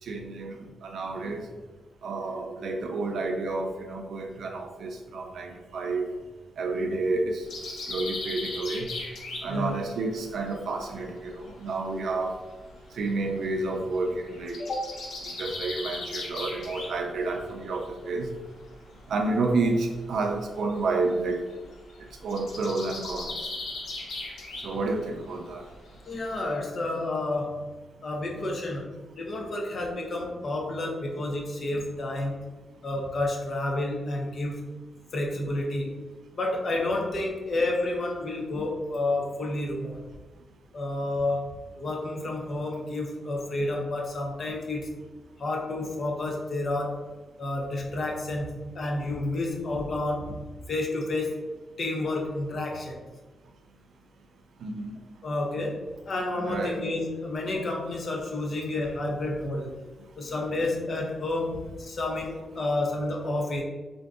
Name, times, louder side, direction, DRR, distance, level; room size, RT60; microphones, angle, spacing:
voice 1, 0.1-1.4 2.0-6.1 6.6-7.4 7.9-8.9 9.4-12.4 13.0-14.6 15.4-18.3 19.1-21.4 22.2-23.4 24.6-25.6 54.6-55.0 56.5-56.8, right 3 dB, 70° right, 3 dB, 0.4 m, -30 dB
sound 1, 7.5-11.7 12.0-18.3 18.6-26.5, left 2 dB, 90° left, 0.7 m, -38 dB
voice 2, 14.6-15.0 26.1-27.7 28.0-28.8 29.2-32.4 32.8-34.7 35.1-35.9 36.3-40.0 40.7-44.9 45.4-47.0 47.4-50.4 50.7-51.4 51.8-53.0 55.2-55.8 56.1-59.7 60.2-63.6, left 2 dB, 45° left, 0 dB, 0.6 m, -30 dB
3.7 x 2.5 x 2.3 m, 1.2 s
cardioid pair, 125°, 0 cm